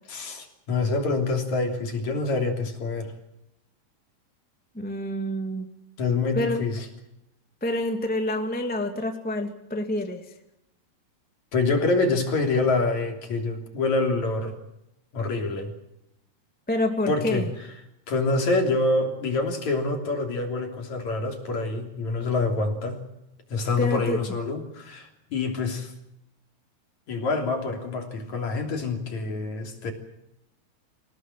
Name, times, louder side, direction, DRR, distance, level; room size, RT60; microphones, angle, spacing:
voice 1, 0.1-3.1 6.0-6.9 11.5-14.6 15.1-15.7 17.1-17.5 18.1-23.0 23.5-25.9 27.1-29.9, left 3 dB, 50° left, 3 dB, 4.3 m, -26 dB
voice 2, 4.7-5.7 6.3-6.6 7.6-10.2 16.7-17.5 23.8-24.2, left 1 dB, 5° left, 5 dB, 1.1 m, -27 dB
26.5 x 17.5 x 7.6 m, 0.84 s
omnidirectional pair, 4.6 m